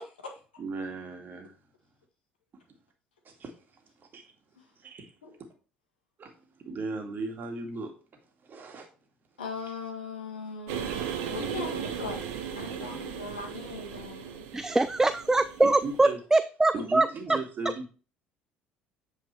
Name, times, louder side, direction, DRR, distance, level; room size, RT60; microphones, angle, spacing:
voice 1, 0.0-0.4 4.6-4.7 5.2-5.4 9.4-14.4 16.7-16.8, left 4 dB, 80° left, 1.6 m, -40 dB
voice 2, 0.6-1.6 3.2-3.5 4.0-4.2 4.8-5.1 6.2-6.3 6.6-7.9 8.4-8.9 15.6-16.2 16.7-17.9, right 3 dB, 40° right, 2.2 m, -36 dB
sound 1, 10.7-16.1, right 8 dB, 65° right, 1.1 m, -37 dB
voice 3, 14.5-17.1, right 2 dB, 10° right, 0.4 m, -23 dB
8.5 x 4.8 x 4.5 m
figure-of-eight pair, 55°, 5 cm